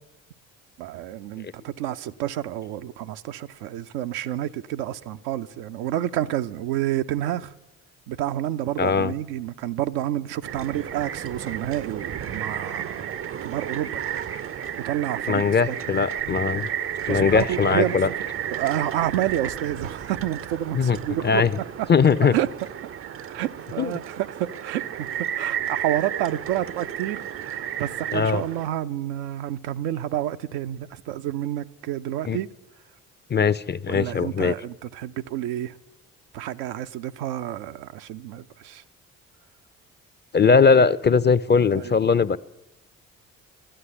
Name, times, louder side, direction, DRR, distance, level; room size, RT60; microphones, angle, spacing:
voice 1, 0.8-7.5 8.1-14.0 14.8-15.8 16.2-16.4 17.1-18.0 18.5-21.4 21.8-21.9 22.3-22.5 23.3-32.5 33.9-35.8 36.3-38.8 41.7-42.0, right 12 dB, 75° right, 0.6 m, -29 dB
voice 2, 8.8-9.1 15.3-16.7 17.1-18.1 20.8-21.0 21.2-21.5 21.9-22.4 23.8-23.9 28.1-28.4 32.2-32.4 33.3-34.5 40.3-42.4, left 5 dB, 25° left, 0.6 m, -20 dB
sound 1, 10.4-28.7, right 9 dB, 35° right, 0.5 m, -33 dB
13.0 x 10.0 x 9.9 m
hypercardioid pair, 45°, 39 cm